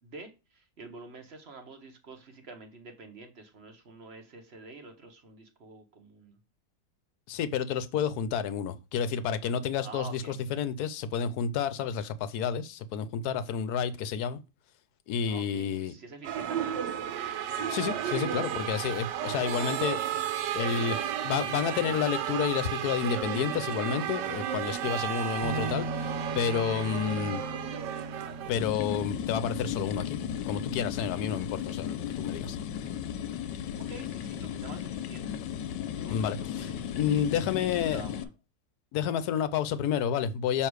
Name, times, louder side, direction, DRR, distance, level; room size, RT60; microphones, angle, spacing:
voice 1, 0.0-6.4 9.8-10.3 15.2-16.9 33.7-37.0 37.3-38.3, right 3 dB, 45° right, 1.1 m, -48 dB
voice 2, 7.3-14.4 15.1-15.9 17.7-20.0 20.5-27.4 28.5-30.2 30.5-32.6 36.1-36.7 36.9-38.0 38.9-40.7, left 8 dB, 70° left, 1.1 m, -30 dB
sound 1, 16.2-28.5, right 9 dB, 85° right, 1.3 m, -33 dB
sound 2, 25.4-34.9, right 1 dB, 60° right, 1.5 m, -41 dB
sound 3, 28.6-38.2, left 9 dB, 85° left, 1.2 m, -35 dB
6.6 x 3.1 x 4.7 m
omnidirectional pair, 1.8 m